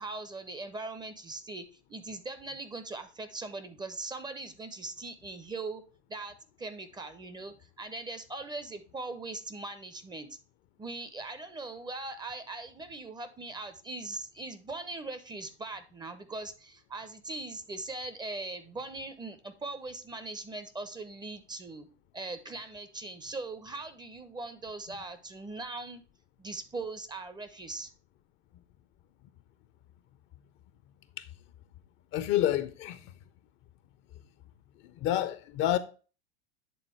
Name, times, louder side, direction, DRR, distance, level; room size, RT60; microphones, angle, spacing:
voice 1, 0.0-5.8 6.1-10.4 10.8-21.9 22.1-26.0 26.4-27.9, right 3 dB, 15° right, 0.6 m, -40 dB
voice 2, 32.1-33.1 34.8-35.8, left 12 dB, 35° left, 0.5 m, -29 dB
8.4 x 3.6 x 4.3 m
hypercardioid pair, 90°, 33 cm